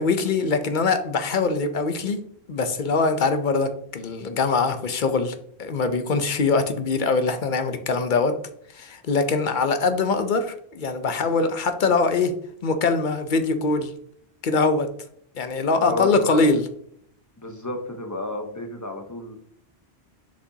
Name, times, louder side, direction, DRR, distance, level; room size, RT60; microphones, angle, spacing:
voice 1, 0.0-2.2 2.5-8.3 8.7-12.3 12.6-13.9 14.4-14.9 15.4-16.6, left 4 dB, 55° left, 9 dB, 0.7 m, -23 dB
voice 2, 15.7-16.4 17.4-19.4, left 1 dB, 20° left, 4 dB, 0.8 m, -32 dB
6.7 x 5.1 x 2.7 m, 0.66 s
omnidirectional pair, 1.1 m